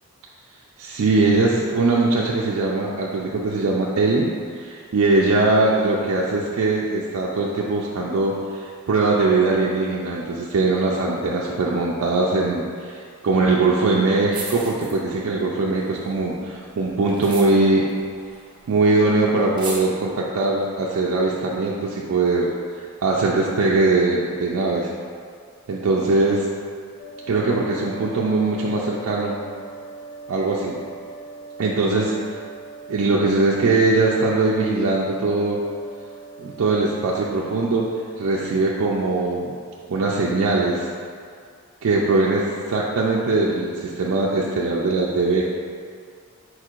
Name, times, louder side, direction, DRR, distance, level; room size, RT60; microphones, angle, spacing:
voice 1, 0.8-17.9 18.7-22.5 23.0-24.9 25.7-26.5 27.3-29.4 30.3-30.8 31.6-32.2 32.9-35.6 36.4-37.9 38.2-39.6 39.9-40.9 41.8-45.4, right 3 dB, 70° right, -4 dB, 0.4 m, -21 dB
sound 1, 14.3-15.3 15.7-18.8 19.0-19.1 19.4-19.8, right 4 dB, 20° right, 0.5 m, -36 dB
sound 2, 27.0-36.7, right 4 dB, 90° left, 0.5 m, -40 dB
4.5 x 4.4 x 2.4 m, 2.2 s
head